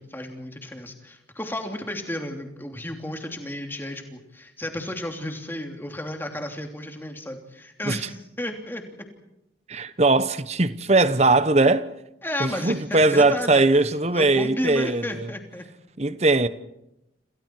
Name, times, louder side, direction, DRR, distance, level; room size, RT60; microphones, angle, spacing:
voice 1, 0.0-8.8 12.2-13.6 14.1-15.6, left 1 dB, 10° left, 3.0 m, -33 dB
voice 2, 9.7-11.9 12.4-15.3 16.0-16.5, right 2 dB, 35° right, 1.0 m, -20 dB
30.0 x 28.0 x 4.7 m
head